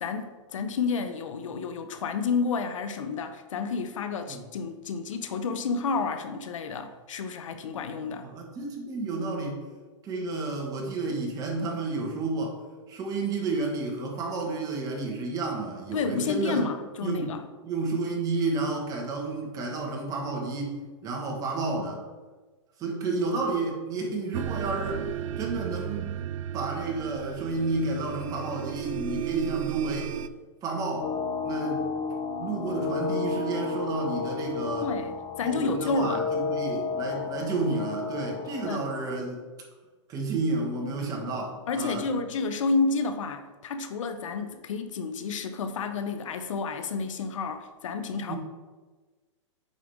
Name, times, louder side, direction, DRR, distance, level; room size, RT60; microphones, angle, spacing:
voice 1, 0.0-8.3 15.9-17.4 34.8-36.3 38.7-38.8 41.7-48.4, left 4 dB, 85° left, 9 dB, 0.7 m, -30 dB
voice 2, 8.2-9.6 10.0-12.6 12.9-16.6 17.0-17.3 17.6-22.0 22.8-25.1 25.4-26.2 26.5-30.1 30.6-31.1 31.4-31.9 32.4-34.9 35.4-39.4 40.1-42.1 48.3-48.4, right 3 dB, 20° right, 0 dB, 1.4 m, -31 dB
sound 1, 24.3-30.3, right 10 dB, 90° right, 0.4 m, -34 dB
sound 2, 31.0-39.1, left 4 dB, 30° left, 0.8 m, -32 dB
8.2 x 5.0 x 3.5 m, 1.3 s
hypercardioid pair, 150°, 16 cm